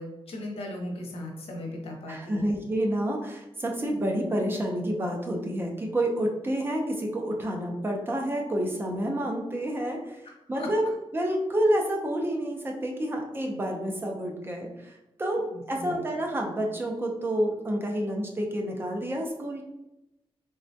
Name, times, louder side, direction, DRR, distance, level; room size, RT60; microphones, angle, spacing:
voice 1, 0.0-2.5 10.3-10.7 15.3-16.1, left 1 dB, 90° left, 1 dB, 0.7 m, -38 dB
voice 2, 2.1-10.2 10.5-10.8 11.1-14.9 15.2-19.6, right 1 dB, 25° right, 1 dB, 0.5 m, -29 dB
3.4 x 2.1 x 2.6 m, 0.92 s
wide cardioid pair, 140°, 10 cm